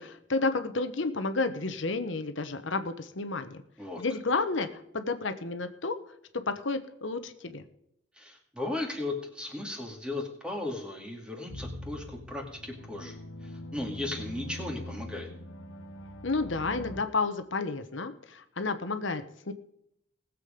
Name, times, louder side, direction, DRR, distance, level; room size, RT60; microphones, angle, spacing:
voice 1, 0.0-3.6 4.0-6.0 6.3-7.6 16.2-19.5, left 3 dB, 75° left, 9 dB, 1.1 m, -31 dB
voice 2, 8.1-15.3, left 2 dB, 5° right, 2 dB, 2.2 m, -36 dB
sound 1, 11.5-17.0, left 1 dB, 90° left, 1.3 m, -42 dB
19.0 x 7.6 x 5.1 m, 0.72 s
head